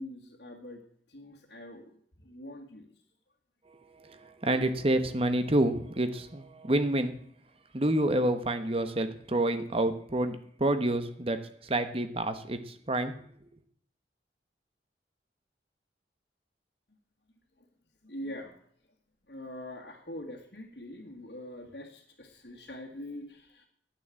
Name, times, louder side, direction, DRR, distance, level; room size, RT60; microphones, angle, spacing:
voice 1, 0.0-2.9 17.6-17.7 18.0-18.6 19.3-23.7, left 1 dB, 60° left, -1 dB, 1.9 m, -44 dB
voice 2, 4.4-7.1 7.7-11.4 11.6-13.1, right 1 dB, 35° right, 9 dB, 1.2 m, -28 dB
10.5 x 9.3 x 7.6 m, 0.64 s
head